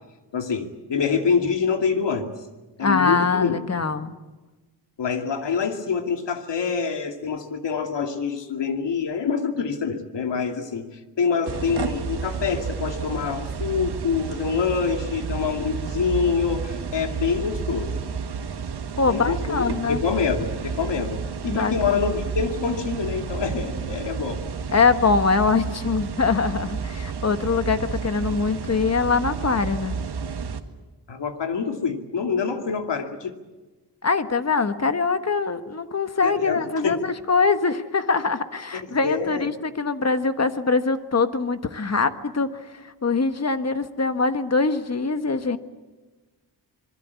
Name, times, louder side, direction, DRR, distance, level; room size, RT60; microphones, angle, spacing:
voice 1, 0.3-2.3 2.8-3.6 5.0-10.8 11.2-18.0 19.0-24.4 31.1-33.3 36.2-37.0 38.7-39.5, left 6 dB, 90° left, 5 dB, 2.5 m, -26 dB
voice 2, 2.8-4.1 19.0-20.0 21.5-22.0 24.7-30.0 34.0-45.6, left 4 dB, 40° left, 10 dB, 1.4 m, -23 dB
sound 1, 11.5-30.6, right 6 dB, 70° right, 1.8 m, -31 dB
26.5 x 21.5 x 8.3 m, 1.2 s
wide cardioid pair, 130°, 41 cm